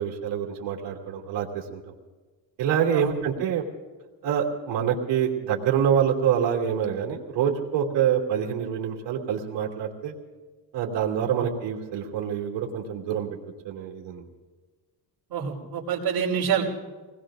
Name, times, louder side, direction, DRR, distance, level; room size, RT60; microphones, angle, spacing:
voice 1, 0.0-1.8 2.6-3.6 4.2-10.1 10.7-13.4 13.6-14.3, right 8 dB, 90° right, -1 dB, 2.7 m, -26 dB
voice 2, 15.3-16.7, right 7 dB, 60° right, -8 dB, 3.6 m, -26 dB
26.5 x 20.0 x 2.6 m, 1.3 s
cardioid pair, 130°, 42 cm